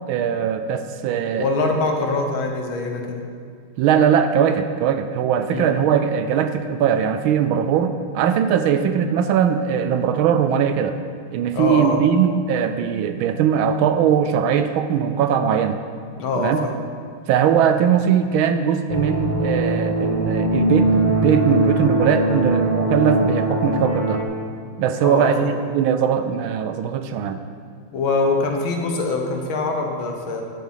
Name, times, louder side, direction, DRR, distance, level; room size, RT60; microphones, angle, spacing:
voice 1, 0.1-1.5 3.8-11.0 11.3-15.8 16.4-16.7 17.3-24.2 24.8-27.4, right 8 dB, 75° right, 9 dB, 1.3 m, -20 dB
voice 2, 1.4-3.2 5.5-5.7 11.5-12.0 16.2-16.7 25.0-25.5 27.9-30.4, left 3 dB, 70° left, 3 dB, 1.8 m, -23 dB
sound 1, 18.9-24.2, right 1 dB, 30° left, 0.8 m, -21 dB
9.2 x 7.6 x 5.7 m, 2.1 s
omnidirectional pair, 2.4 m